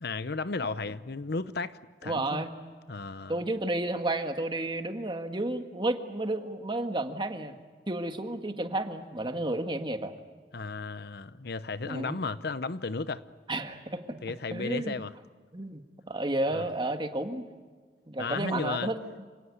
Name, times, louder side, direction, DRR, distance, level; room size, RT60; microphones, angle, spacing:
voice 1, 0.0-2.4 2.9-3.4 10.5-13.2 14.2-15.1 16.5-16.7 18.2-18.9, left 3 dB, 60° left, 0.8 m, -34 dB
voice 2, 2.0-2.5 3.3-7.6 7.9-10.1 11.8-12.2 13.5-14.2 14.5-14.9 15.5-15.8 16.1-17.5 18.1-19.3, right 1 dB, 25° right, 1.7 m, -32 dB
28.0 x 18.0 x 9.7 m
head